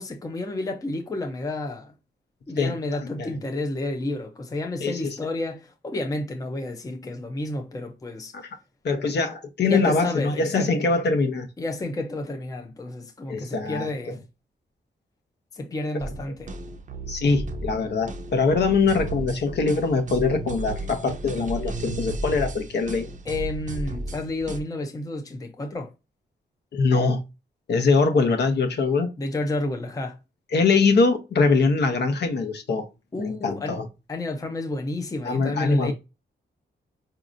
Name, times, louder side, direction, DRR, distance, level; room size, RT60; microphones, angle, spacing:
voice 1, 0.0-2.0 2.5-8.3 9.6-10.7 11.6-14.2 15.5-16.5 23.3-25.9 29.2-30.2 33.1-33.8 34.1-35.9, left 2 dB, 20° left, 0.5 m, -30 dB
voice 2, 4.8-5.1 8.3-8.4 8.8-11.5 13.3-13.9 17.1-23.1 26.7-27.2 27.7-29.1 30.5-32.9 33.2-33.8 35.2-35.9, left 4 dB, 65° left, 0.9 m, -22 dB
sound 1, 16.0-24.6, right 2 dB, 45° right, 0.6 m, -34 dB
5.0 x 2.8 x 2.5 m
wide cardioid pair, 160°, 18 cm